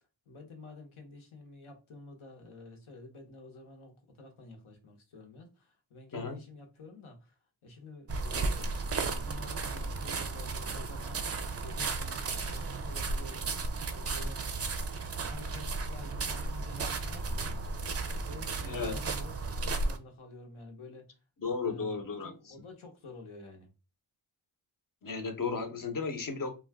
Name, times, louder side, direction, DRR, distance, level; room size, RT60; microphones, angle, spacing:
voice 1, 0.3-14.4 14.7-17.6 18.1-21.1 21.7-23.7, left 3 dB, 75° left, 1.1 m, -50 dB
sound 1, 8.1-20.0, right 3 dB, 30° right, 0.4 m, -34 dB
voice 2, 18.6-19.0 21.4-22.3 25.0-26.5, left 4 dB, 40° left, 0.8 m, -34 dB
2.4 x 2.3 x 3.4 m
cardioid pair, 70°, 49 cm